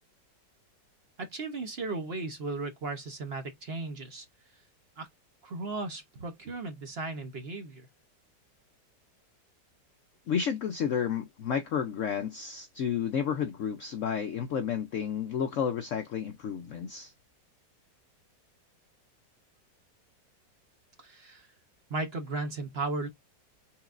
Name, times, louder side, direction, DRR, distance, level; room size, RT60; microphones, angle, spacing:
voice 1, 1.2-4.2 5.0-5.1 5.4-7.9 21.0-21.5 21.9-23.1, right 3 dB, 45° right, 0.9 m, -36 dB
voice 2, 10.3-17.1, left 7 dB, 65° left, 0.8 m, -31 dB
5.9 x 3.6 x 2.5 m
omnidirectional pair, 1.9 m